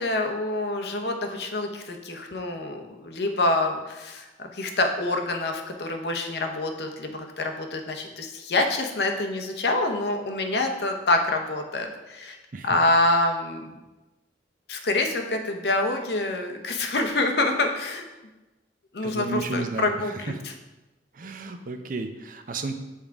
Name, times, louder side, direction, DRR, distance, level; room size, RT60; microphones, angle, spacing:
voice 1, 0.0-12.4 12.6-13.7 14.7-18.0 18.9-20.5, left 2 dB, 65° left, 4 dB, 0.8 m, -26 dB
voice 2, 19.0-19.9 21.1-22.7, right 3 dB, 50° right, 7 dB, 0.5 m, -32 dB
7.2 x 3.6 x 4.6 m, 1.1 s
head